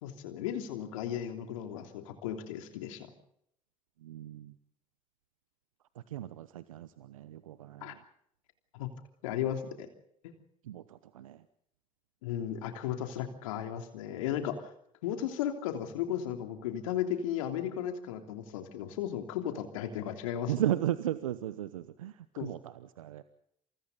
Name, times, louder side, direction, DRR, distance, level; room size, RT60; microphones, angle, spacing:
voice 1, 0.0-3.1 7.8-7.9 8.7-8.9 9.2-9.9 10.2-10.3 12.2-14.7 15.0-20.5 22.4-22.5, left 10 dB, 80° left, 5 dB, 3.2 m, -35 dB
voice 2, 4.0-4.5 6.1-7.8 10.7-11.4 20.5-22.1 22.4-23.2, right 12 dB, 85° right, 14 dB, 0.9 m, -35 dB
28.5 x 27.5 x 4.0 m, 0.73 s
hypercardioid pair, 55°, 17 cm